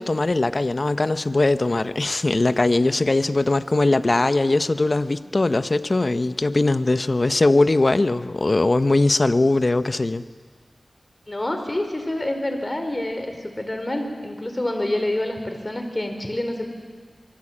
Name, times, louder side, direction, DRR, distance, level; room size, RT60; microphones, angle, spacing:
voice 1, 0.0-10.2, left 2 dB, 45° left, 12 dB, 1.0 m, -20 dB
voice 2, 11.3-16.7, left 1 dB, 30° left, 5 dB, 4.6 m, -27 dB
27.0 x 23.5 x 8.7 m, 1.5 s
wide cardioid pair, 55°, 0 cm